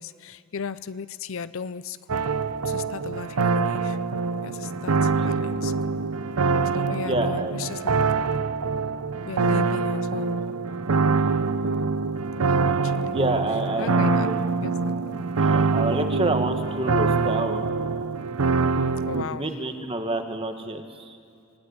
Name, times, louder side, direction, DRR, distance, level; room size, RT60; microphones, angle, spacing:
voice 1, 0.0-2.3 2.6-4.0 4.4-6.0 6.6-8.1 9.2-10.3 12.3-13.2 13.8-14.3 14.6-15.2 18.5-18.6 19.1-19.5, left 5 dB, 65° left, 15 dB, 0.6 m, -36 dB
sound 1, 2.1-19.2, right 4 dB, 90° right, 0.8 m, -24 dB
voice 2, 7.0-7.5 13.1-14.4 15.4-17.7 19.1-21.2, right 2 dB, 25° right, 6 dB, 1.5 m, -28 dB
26.0 x 18.5 x 9.7 m, 2.3 s
head